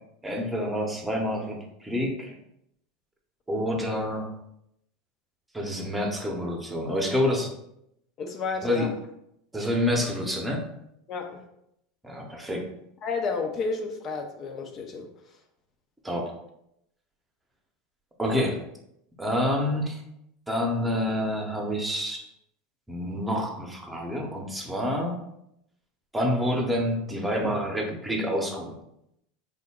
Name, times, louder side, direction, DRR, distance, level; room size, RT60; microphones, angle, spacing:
voice 1, 0.2-2.3 3.5-4.3 5.5-7.5 8.6-8.9 9.5-10.7 12.0-12.7 16.0-16.3 18.2-18.6 19.2-20.0 20.5-22.2 22.9-25.2 26.1-28.7, equal, 10° right, 1 dB, 0.8 m, -28 dB
voice 2, 8.2-8.9 11.1-11.4 13.0-15.1, left 4 dB, 40° left, 3 dB, 0.5 m, -31 dB
3.7 x 2.2 x 3.5 m, 0.78 s
hypercardioid pair, 95°, 0 cm